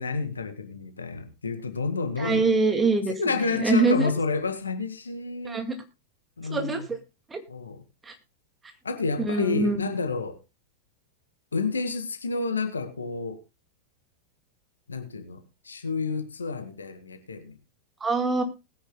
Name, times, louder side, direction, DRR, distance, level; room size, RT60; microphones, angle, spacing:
voice 1, 0.0-2.4 3.2-5.7 6.4-6.9 7.5-7.8 8.8-10.4 11.5-13.4 14.9-17.6, left 4 dB, 75° left, 1.8 m, -30 dB
voice 2, 2.2-4.1 5.4-5.8 6.5-7.0 7.3-7.4 8.0-8.1 9.2-9.9 18.0-18.4, right 3 dB, 15° right, 2.2 m, -24 dB
20.5 x 9.9 x 2.3 m
figure-of-eight pair, 90°, 0 cm